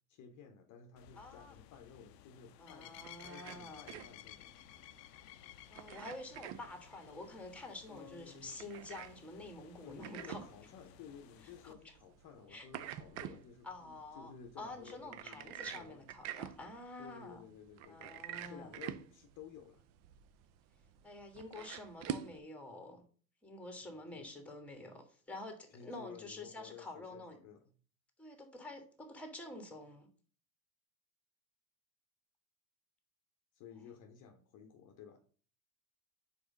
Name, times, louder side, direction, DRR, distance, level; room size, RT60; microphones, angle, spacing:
voice 1, 0.1-4.5 7.9-8.6 9.8-16.0 17.0-19.8 24.1-24.3 25.7-27.7 33.5-35.2, left 7 dB, 40° left, 0.9 m, -54 dB
sound 1, 1.0-11.7, left 14 dB, 75° left, 0.6 m, -57 dB
voice 2, 1.2-1.6 2.6-3.8 5.7-10.4 11.6-11.9 12.5-12.7 13.6-17.4 17.9-18.7 21.0-23.0 23.4-27.4 28.2-30.1, left 2 dB, 5° left, 1.4 m, -48 dB
sound 2, 2.9-22.4, right 10 dB, 35° right, 0.4 m, -48 dB
4.9 x 4.3 x 5.1 m
hypercardioid pair, 90°, 50 cm